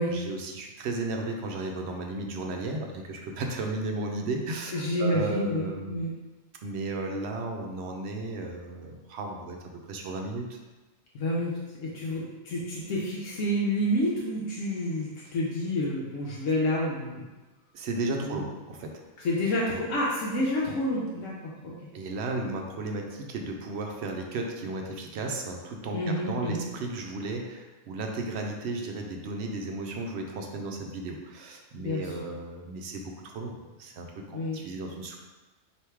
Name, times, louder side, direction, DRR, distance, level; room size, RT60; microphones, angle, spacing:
voice 1, 0.0-6.0 6.6-9.6 9.9-10.6 17.7-19.0 21.9-35.2, right 2 dB, 65° right, 2 dB, 0.8 m, -34 dB
voice 2, 4.7-6.1 11.1-17.2 18.2-18.4 19.2-21.7 25.9-26.6 31.8-32.0 34.3-34.6, left 1 dB, 80° left, -4 dB, 1.1 m, -29 dB
3.4 x 2.8 x 4.5 m, 1.2 s
omnidirectional pair, 1.3 m